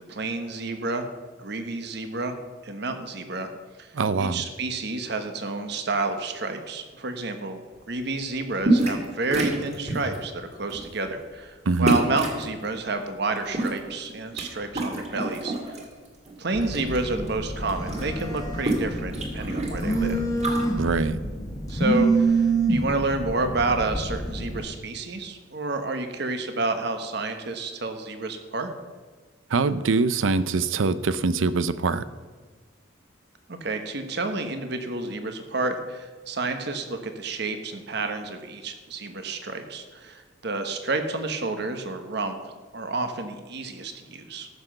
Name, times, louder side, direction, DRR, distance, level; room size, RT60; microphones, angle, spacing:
voice 1, 0.1-1.1 1.4-2.4 2.6-3.5 3.8-3.9 4.2-7.6 7.9-15.8 16.4-20.2 21.7-28.7 33.5-44.5, right 3 dB, 55° right, 7 dB, 1.1 m, -30 dB
voice 2, 3.9-4.4 11.7-12.0 20.8-21.2 29.5-32.0, right 4 dB, 80° right, 14 dB, 0.6 m, -23 dB
sound 1, 8.6-9.1 9.3-10.2 10.7-10.9 11.9-12.4 13.3-14.5 14.7-15.8 16.3-17.0 17.3-17.4 17.6-20.7, right 2 dB, 35° right, 1.9 m, -27 dB
Telephone, 16.5-24.6, right 3 dB, 20° left, 1.4 m, -27 dB
13.5 x 6.0 x 6.5 m, 1.4 s
head